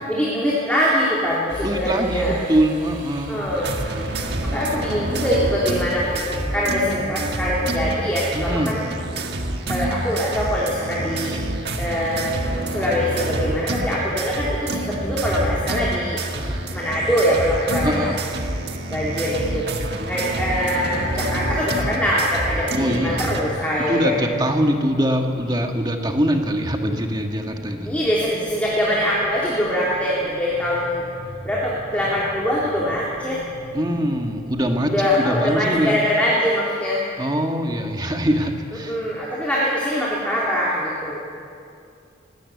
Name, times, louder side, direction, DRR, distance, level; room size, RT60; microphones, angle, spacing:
voice 1, 0.1-2.4 3.3-3.7 4.4-8.8 9.7-11.3 11.8-12.3 12.7-16.2 16.7-18.1 18.9-24.2 27.8-31.0 31.4-33.4 34.8-37.0 38.8-41.2, equal, 5° left, -6 dB, 3.0 m, -23 dB
sound 1, 1.5-6.7, equal, 70° right, 2.8 m, -36 dB
voice 2, 1.6-3.4 8.3-8.7 16.4-16.6 17.8-18.2 22.7-23.3 23.9-27.9 33.7-36.0 37.2-39.0, equal, 20° right, 3 dB, 1.6 m, -23 dB
sound 2, 3.5-23.4, right 1 dB, 55° right, 1.7 m, -27 dB
sound 3, 20.8-35.9, equal, 85° right, 2.6 m, -39 dB
21.5 x 18.0 x 8.3 m, 2.4 s
head